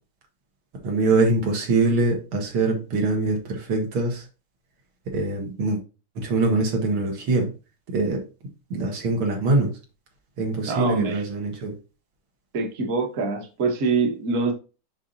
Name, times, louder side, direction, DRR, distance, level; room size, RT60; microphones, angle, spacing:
voice 1, 0.8-4.2 5.1-5.8 6.2-7.5 7.9-8.2 8.7-9.7 10.4-11.7, right 3 dB, 85° right, 2 dB, 2.4 m, -23 dB
voice 2, 10.7-11.2 12.5-14.5, right 4 dB, 45° right, 4 dB, 1.3 m, -24 dB
7.4 x 5.5 x 2.7 m, 0.32 s
omnidirectional pair, 2.3 m